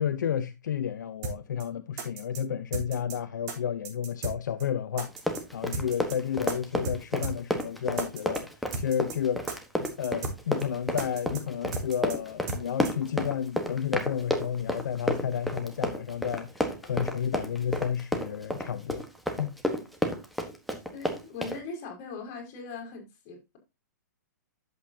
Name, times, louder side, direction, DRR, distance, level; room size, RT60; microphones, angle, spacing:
voice 1, 0.0-5.1 5.5-8.5 8.7-9.4 9.8-19.0 19.4-19.6, left 8 dB, 75° left, 0.9 m, -31 dB
sound 1, 1.2-1.3 1.6-1.7 2.0-2.4 2.7-3.2 3.5-3.6 3.8-4.3 4.6-4.7 5.0-5.4 5.7-6.2 6.5-6.6 6.8-7.0 7.2-7.3 7.6-7.7 8.0-8.4 8.7-9.2 9.5-9.6 9.8-10.3 10.6-10.7 11.0-11.4 11.7-12.2 12.5-12.6 12.8-12.9, right 4 dB, 35° right, 3.5 m, -35 dB
Run, 5.1-21.6, equal, ahead, 1.3 m, -31 dB
voice 2, 20.9-23.6, left 4 dB, 35° left, 5.5 m, -40 dB
11.0 x 8.0 x 2.8 m
hypercardioid pair, 145°, 10 cm